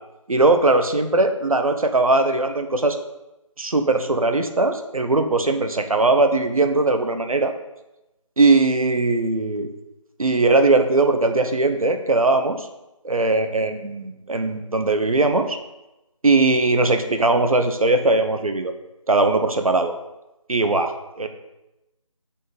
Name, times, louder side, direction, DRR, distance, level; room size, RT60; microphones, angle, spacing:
voice 1, 0.3-3.0 3.6-7.5 8.4-9.7 10.2-12.7 13.0-15.6 16.2-18.7 19.1-19.9 20.5-21.3, right 2 dB, 85° right, 7 dB, 0.9 m, -19 dB
7.4 x 4.2 x 3.8 m, 0.96 s
figure-of-eight pair, 180°, 18 cm